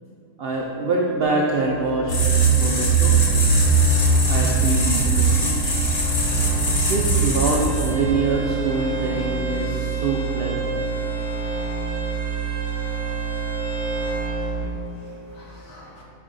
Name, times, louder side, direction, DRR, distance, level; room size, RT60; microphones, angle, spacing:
voice 1, 0.4-3.2 4.3-5.8 6.9-10.7, right 3 dB, 90° right, -2 dB, 0.5 m, -25 dB
sound 1, 1.2-14.7, right 6 dB, 70° left, 1.2 m, -29 dB
sound 2, 2.1-8.1, right 3 dB, 40° left, 0.8 m, -19 dB
Bowed string instrument, 7.4-14.4, right 2 dB, 65° right, 1.0 m, -32 dB
voice 2, 14.0-16.0, left 1 dB, 85° left, -4 dB, 1.7 m, -49 dB
5.3 x 5.0 x 3.8 m, 2.6 s
omnidirectional pair, 1.6 m